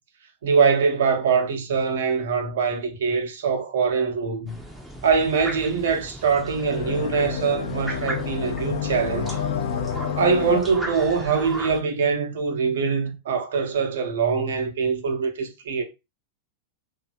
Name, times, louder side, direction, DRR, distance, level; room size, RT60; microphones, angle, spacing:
voice 1, 0.4-4.6 5.0-9.4 10.2-15.8, right 5 dB, 60° right, 0.6 m, -23 dB
sound 1, 4.5-11.8, right 1 dB, 5° right, 0.5 m, -37 dB
sound 2, 6.4-10.6, left 8 dB, 60° left, 0.4 m, -29 dB
2.7 x 2.2 x 2.4 m
figure-of-eight pair, 90°, 0 cm